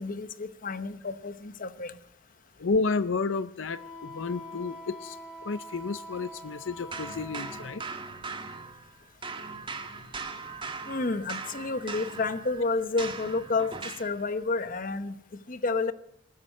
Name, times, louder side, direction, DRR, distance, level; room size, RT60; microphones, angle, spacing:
voice 1, 0.0-2.0 10.9-13.7 14.0-15.2 15.5-15.9, left 3 dB, 45° left, 13 dB, 1.0 m, -30 dB
voice 2, 2.6-7.8, left 4 dB, 80° left, 14 dB, 0.6 m, -31 dB
Wind instrument woodwind instrument, 3.7-7.8, left 1 dB, 10° right, 6.2 m, -44 dB
sound 1, 6.9-9.0 9.2-14.1, right 4 dB, 25° right, 1.7 m, -39 dB
20.0 x 9.6 x 7.6 m, 0.80 s
head